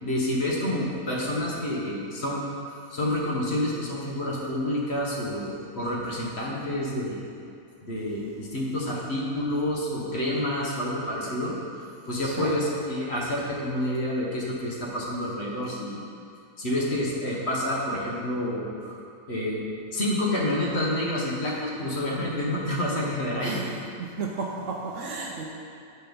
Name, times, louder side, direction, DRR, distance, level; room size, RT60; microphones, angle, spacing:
voice 1, 0.0-2.4 2.9-7.2 7.8-11.6 12.1-16.0 16.6-19.0 19.3-19.6 19.9-23.6, left 1 dB, 50° left, -4 dB, 1.2 m, -28 dB
voice 2, 12.2-12.5 23.4-23.7 24.0-25.4, right 4 dB, 65° right, 0 dB, 0.8 m, -33 dB
6.7 x 4.3 x 5.2 m, 2.4 s
omnidirectional pair, 1.6 m